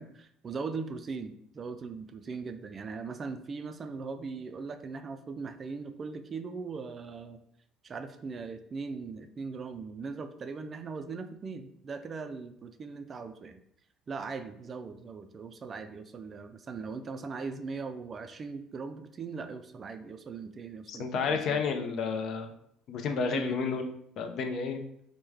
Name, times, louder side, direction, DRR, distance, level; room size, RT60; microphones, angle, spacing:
voice 1, 0.0-7.4 7.8-13.6 14.1-21.6 23.3-23.6, right 4 dB, 40° right, 8 dB, 0.3 m, -39 dB
voice 2, 20.9-22.5 22.9-23.9 24.2-24.8, left 5 dB, 60° left, 6 dB, 0.4 m, -31 dB
3.1 x 2.1 x 3.4 m, 0.70 s
supercardioid pair, 80°, 0 cm